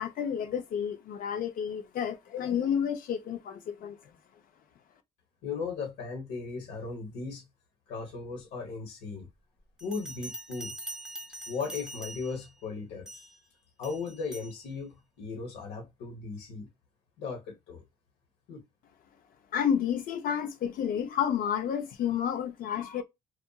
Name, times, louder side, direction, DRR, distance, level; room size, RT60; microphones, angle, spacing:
voice 1, 0.0-4.0 19.5-23.0, left 8 dB, 55° left, 0.5 m, -30 dB
voice 2, 5.4-7.4 7.9-9.3 9.8-10.7 11.5-13.3 13.8-16.7 17.2-17.8 18.5-18.6, left 4 dB, 85° left, 1.1 m, -37 dB
Bell, 9.8-12.5 13.1-13.4 13.8-14.6, right 1 dB, 5° right, 0.7 m, -43 dB
2.8 x 2.4 x 2.3 m
cardioid pair, 110°, 17 cm